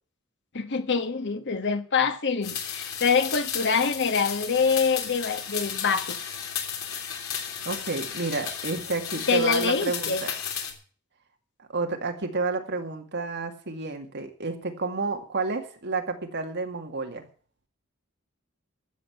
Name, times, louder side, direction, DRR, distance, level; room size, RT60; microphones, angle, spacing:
voice 1, 0.5-6.2 9.3-10.2, left 5 dB, 55° left, 1.4 m, -25 dB
sound 1, 2.4-10.7, left 8 dB, 80° left, 3.3 m, -34 dB
voice 2, 7.6-10.3 11.6-17.3, right 3 dB, 55° right, 2.2 m, -30 dB
13.5 x 7.7 x 8.0 m
head